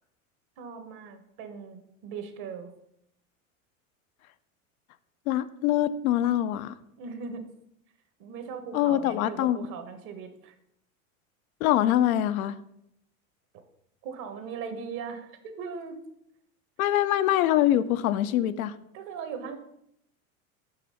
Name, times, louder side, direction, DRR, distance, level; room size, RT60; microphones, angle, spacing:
voice 1, 0.6-2.7 7.0-7.5 8.2-10.5 14.0-16.0 17.7-17.9 18.9-19.6, right 6 dB, 50° right, 7 dB, 1.5 m, -39 dB
voice 2, 5.3-6.7 8.7-9.6 11.6-12.6 16.8-18.7, left 12 dB, 80° left, 12 dB, 0.7 m, -24 dB
6.1 x 5.7 x 5.7 m, 0.77 s
hypercardioid pair, 105°, 42 cm